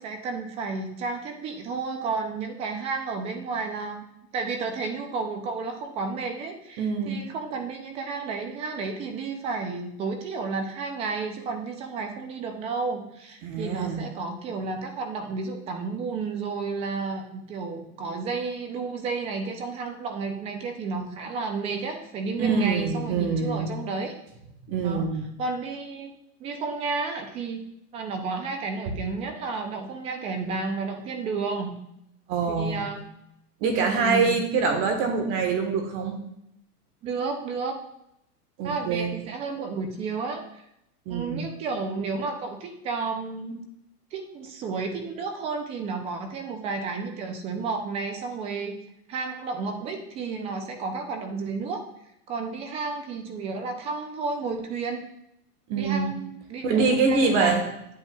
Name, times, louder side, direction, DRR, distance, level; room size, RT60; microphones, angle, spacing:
voice 1, 0.0-4.1 4.3-24.1 24.8-25.1 25.4-26.1 26.4-27.6 27.9-31.8 32.5-33.0 33.9-34.4 37.0-37.8 38.6-40.6 41.1-43.6 44.1-48.8 49.1-51.8 52.3-55.0 55.7-56.8 57.1-57.7, right 4 dB, 15° right, 5 dB, 0.4 m, -32 dB
voice 2, 6.8-7.2 13.4-14.0 22.4-23.7 24.7-25.2 32.3-32.8 33.6-36.2 38.6-39.1 41.1-41.6 55.7-56.1 56.6-57.7, right 4 dB, 40° right, 4 dB, 1.3 m, -25 dB
9.4 x 8.1 x 2.3 m, 0.78 s
supercardioid pair, 140°, 48 cm